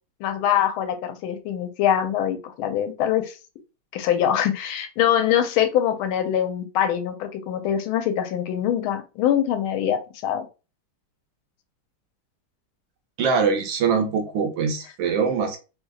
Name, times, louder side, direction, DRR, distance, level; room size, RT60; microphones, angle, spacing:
voice 1, 0.2-3.3 3.9-10.5, left 10 dB, 80° left, 8 dB, 1.4 m, -23 dB
voice 2, 13.2-15.6, right 5 dB, 70° right, 3 dB, 1.3 m, -23 dB
3.4 x 2.8 x 2.3 m, 0.30 s
omnidirectional pair, 2.3 m